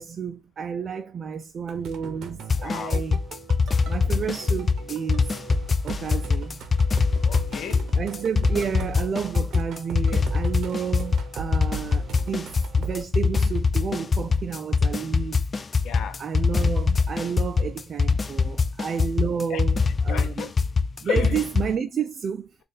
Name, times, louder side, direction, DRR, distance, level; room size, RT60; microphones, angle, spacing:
voice 1, 0.0-3.2 3.9-5.4 5.8-6.6 7.9-15.4 16.2-20.5 21.0-22.6, right 7 dB, 50° right, 0.4 m, -31 dB
sound 1, 1.7-13.0, right 4 dB, 75° right, 0.7 m, -38 dB
sound 2, 2.5-21.8, left 4 dB, 35° left, 0.3 m, -23 dB
voice 2, 2.6-3.0 7.1-7.9 15.8-16.2 18.5-18.6 19.5-19.6 20.1-20.5 21.0-21.5, left 8 dB, 75° left, 0.7 m, -33 dB
4.1 x 2.4 x 3.3 m
cardioid pair, 90°, 0 cm